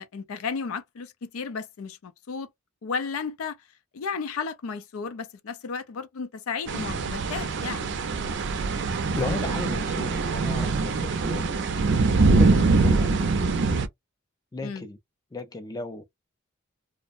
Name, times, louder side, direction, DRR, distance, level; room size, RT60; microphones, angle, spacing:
voice 1, 0.0-2.5 2.8-3.6 3.9-7.9 14.6-14.8, left 5 dB, 80° left, 0.4 m, -33 dB
sound 1, 6.7-13.9, right 3 dB, 60° right, 0.5 m, -23 dB
voice 2, 9.1-11.6 12.4-13.3 14.5-15.0 15.3-16.0, left 2 dB, 20° left, 0.4 m, -35 dB
2.5 x 2.0 x 2.5 m
head